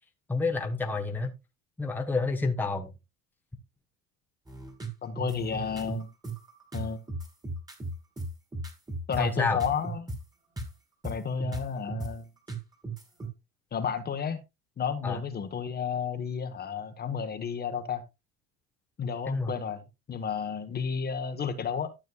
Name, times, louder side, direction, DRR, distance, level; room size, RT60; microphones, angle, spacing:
voice 1, 0.3-1.3 1.8-2.9 9.2-9.6 15.0-15.2 19.3-19.5, left 3 dB, 5° left, 1.2 m, -28 dB
sound 1, 4.5-10.2 10.6-10.7 11.0-12.1 12.5-13.3, right 2 dB, 10° right, 2.4 m, -36 dB
voice 2, 5.0-6.1 6.7-7.0 9.1-10.1 11.0-12.3 13.7-14.4 14.8-18.0 19.0-19.8 20.1-21.9, left 6 dB, 30° left, 1.3 m, -32 dB
12.5 x 6.4 x 2.4 m
supercardioid pair, 105°, 31 cm